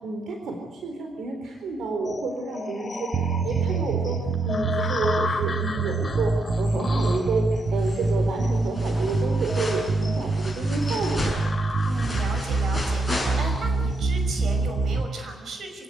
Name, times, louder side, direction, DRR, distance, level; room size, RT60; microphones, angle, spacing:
voice 1, 0.0-4.2 4.4-11.4, right 3 dB, 80° right, 3 dB, 4.0 m, -30 dB
sound 1, 2.0-15.1, left 3 dB, 25° left, 2.7 m, -35 dB
sound 2, 3.1-15.1, right 3 dB, 35° right, 1.2 m, -25 dB
voice 2, 5.4-6.1 11.8-15.8, right 2 dB, 55° right, 4 dB, 5.4 m, -37 dB
sound 3, 7.7-8.3 8.5-13.8 14.2-14.3, left 1 dB, 5° left, 6.3 m, -34 dB
26.5 x 17.5 x 9.5 m, 1.3 s
wide cardioid pair, 180°, 0 cm